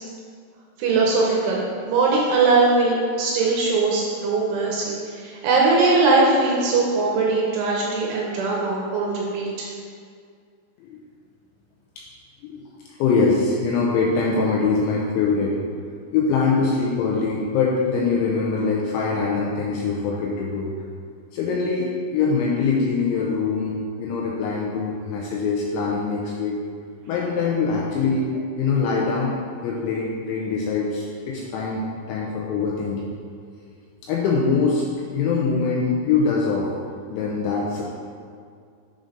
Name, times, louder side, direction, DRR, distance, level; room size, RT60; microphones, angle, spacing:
voice 1, 0.8-9.7, right 3 dB, 80° right, -3 dB, 2.9 m, -20 dB
voice 2, 13.0-20.7 21.3-23.7 24.0-26.6 27.1-29.3 29.6-31.8 32.1-33.0 34.0-34.8 35.1-36.7 37.1-37.8, left 4 dB, 85° left, -3 dB, 2.8 m, -23 dB
7.7 x 3.9 x 5.1 m, 2.2 s
omnidirectional pair, 6.0 m